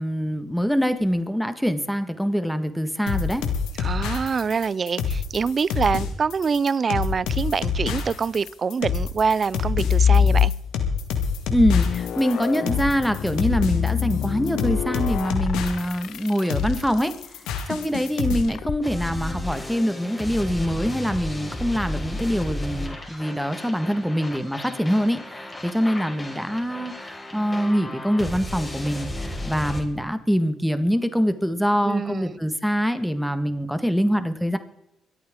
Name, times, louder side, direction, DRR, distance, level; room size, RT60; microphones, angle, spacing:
voice 1, 0.0-3.4 11.5-17.1 17.7-34.6, equal, ahead, 1.6 m, -24 dB
sound 1, 3.1-18.4, left 6 dB, 85° left, 1.8 m, -27 dB
voice 2, 3.8-10.5 31.8-32.3, right 5 dB, 45° right, 0.5 m, -25 dB
sound 2, 9.5-11.0 11.4-16.9 18.5-18.8, left 8 dB, 70° left, 0.4 m, -24 dB
sound 3, 18.8-29.8, left 1 dB, 20° left, 3.8 m, -34 dB
24.0 x 8.9 x 3.7 m
supercardioid pair, 60°, 0 cm